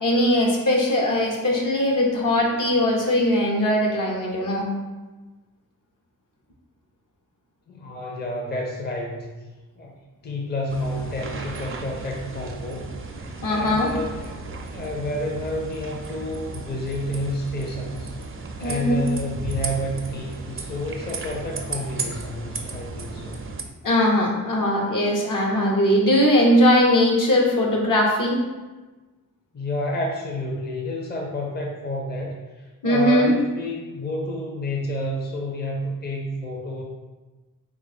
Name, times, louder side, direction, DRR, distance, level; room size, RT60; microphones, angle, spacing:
voice 1, 0.0-4.7 13.4-13.9 18.6-19.1 23.8-28.4 32.8-33.3, left 1 dB, 60° left, -1 dB, 0.9 m, -20 dB
voice 2, 7.7-9.3 9.8-9.9 10.2-12.9 13.5-14.3 14.7-18.1 18.6-23.4 29.5-36.8, left 1 dB, 30° left, 0 dB, 0.6 m, -30 dB
sound 1, 10.7-23.6, right 3 dB, 35° right, 0.5 m, -35 dB
3.3 x 2.5 x 4.1 m, 1.2 s
cardioid pair, 65°, 35 cm